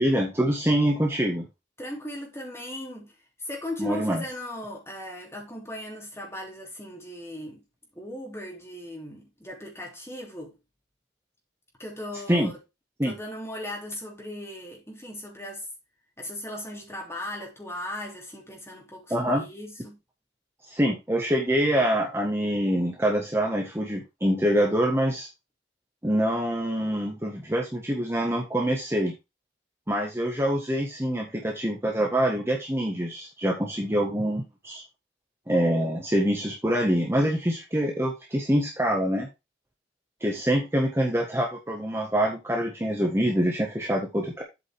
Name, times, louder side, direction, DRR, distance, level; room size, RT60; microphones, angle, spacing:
voice 1, 0.0-1.5 3.8-4.2 12.3-12.5 13.0-13.1 19.1-19.5 20.7-25.3 26.0-29.1 29.9-34.8 35.5-39.3 40.2-44.4, equal, 15° right, 1.6 m, -25 dB
voice 2, 1.8-7.6 7.9-10.6 11.8-12.6 13.0-15.7 16.2-20.0, left 1 dB, 15° left, 3.2 m, -38 dB
8.3 x 5.5 x 4.7 m
head